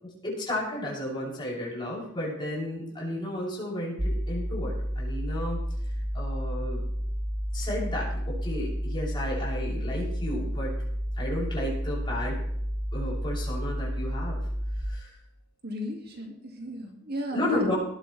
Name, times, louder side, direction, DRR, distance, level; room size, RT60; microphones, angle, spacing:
voice 1, 0.0-5.6 6.1-6.8 7.5-10.7 11.2-12.4 12.9-14.4 14.8-15.1 17.3-17.7, left 1 dB, 25° left, -5 dB, 7.2 m, -33 dB
sound 1, 4.0-14.8, equal, 15° right, 0.8 m, -31 dB
voice 2, 15.6-17.7, equal, 55° right, 2 dB, 2.3 m, -35 dB
19.0 x 12.0 x 3.4 m, 0.74 s
head